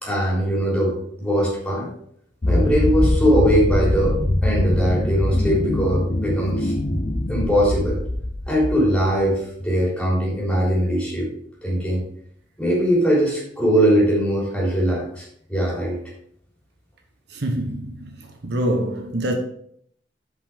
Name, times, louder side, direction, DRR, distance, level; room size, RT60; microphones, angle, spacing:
voice 1, 0.0-1.9 2.5-6.7 7.3-8.0 8.5-11.3 11.6-12.0 12.6-16.0, equal, 5° left, 3.7 m, -21 dB
sound 1, 2.4-9.2, left 1 dB, 35° left, 0.7 m, -22 dB
voice 2, 17.3-18.1 18.4-19.3, right 1 dB, 65° right, 1.1 m, -25 dB
8.1 x 5.6 x 5.1 m
head